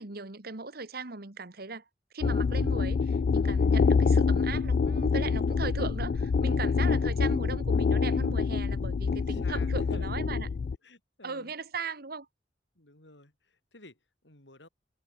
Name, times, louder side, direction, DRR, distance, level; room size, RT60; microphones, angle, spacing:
voice 1, 0.0-1.8 2.1-10.5 11.2-12.3, right 4 dB, 55° right, 1.8 m, -38 dB
sound 1, 2.2-10.8, left 5 dB, 50° left, 0.3 m, -26 dB
voice 2, 6.8-7.5 9.1-10.2 10.8-11.5 12.8-14.7, left 2 dB, 75° left, 5.6 m, -53 dB
head